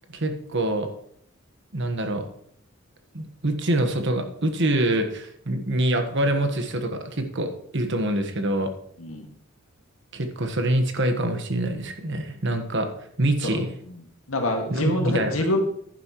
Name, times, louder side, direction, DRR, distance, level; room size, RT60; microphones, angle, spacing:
voice 1, 0.1-0.9 1.7-2.3 3.1-8.7 10.1-12.9 13.2-13.7 14.7-15.3, right 1 dB, 60° right, 6 dB, 1.4 m, -25 dB
voice 2, 14.3-15.6, left 2 dB, 75° left, 3 dB, 2.0 m, -26 dB
10.5 x 10.5 x 3.1 m, 0.67 s
head